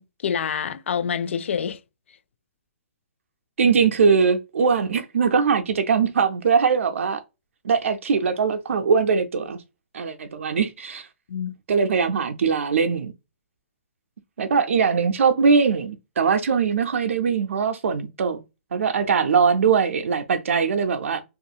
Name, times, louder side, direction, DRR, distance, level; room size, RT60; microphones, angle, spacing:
voice 1, 0.0-1.8 11.3-11.5, left 7 dB, 70° left, 0.3 m, -27 dB
voice 2, 3.6-7.2 7.6-9.6 9.9-11.1 11.7-13.1 14.4-18.4 18.7-21.2, right 5 dB, 80° right, 0.3 m, -21 dB
2.7 x 2.4 x 2.3 m
hypercardioid pair, 150°, 7 cm